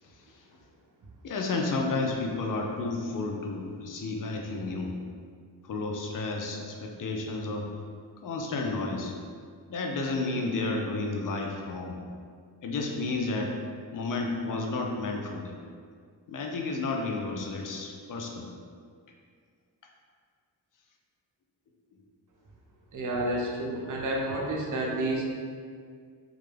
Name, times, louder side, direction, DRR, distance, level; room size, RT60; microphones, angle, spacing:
voice 1, 1.2-4.9 5.7-7.7 8.2-9.1 9.7-12.0 12.6-13.5 13.9-15.6 16.3-18.4, left 3 dB, 50° left, 1 dB, 0.5 m, -31 dB
voice 2, 22.9-25.2, right 1 dB, 45° right, -2 dB, 0.6 m, -30 dB
2.3 x 2.1 x 3.2 m, 2.1 s
cardioid pair, 60°, 44 cm